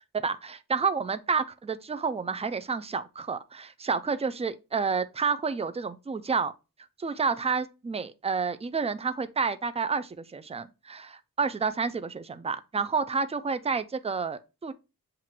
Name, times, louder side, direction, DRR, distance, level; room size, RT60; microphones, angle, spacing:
voice 1, 0.1-6.5 7.0-14.7, right 5 dB, 20° right, 0.4 m, -30 dB
7.4 x 2.5 x 2.8 m
wide cardioid pair, 70°, 35 cm